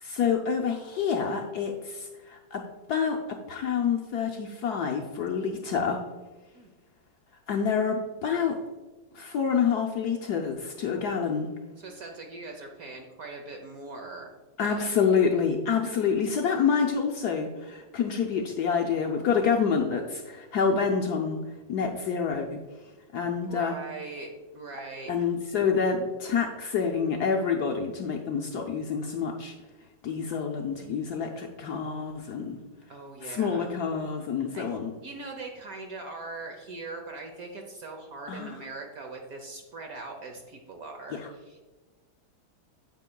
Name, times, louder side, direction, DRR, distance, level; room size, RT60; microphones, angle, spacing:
voice 1, 0.0-2.6 2.9-6.0 7.5-8.6 9.1-11.5 14.6-21.4 21.7-22.6 23.1-23.8 25.1-29.5 30.0-32.6 33.2-34.9 38.3-38.6 41.1-41.3, left 6 dB, 65° left, 2 dB, 1.0 m, -27 dB
voice 2, 11.8-14.3 14.6-14.9 23.4-25.3 32.9-33.7 34.5-34.7 35.0-41.6, right 3 dB, 60° right, 3 dB, 1.1 m, -41 dB
9.5 x 8.0 x 2.3 m, 1.2 s
omnidirectional pair, 2.2 m